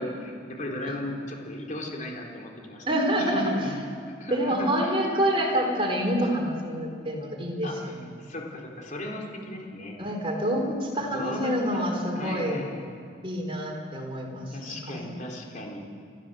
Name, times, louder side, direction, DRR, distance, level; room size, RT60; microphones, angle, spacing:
voice 1, 0.0-2.9 3.2-3.7 4.1-5.0 7.6-10.0 11.0-12.9 14.5-15.8, left 1 dB, 45° left, 0 dB, 4.1 m, -36 dB
voice 2, 2.9-3.5 4.3-8.0 10.0-12.6 13.2-15.1, equal, 30° right, 1 dB, 4.1 m, -27 dB
30.0 x 13.5 x 7.9 m, 2.4 s
head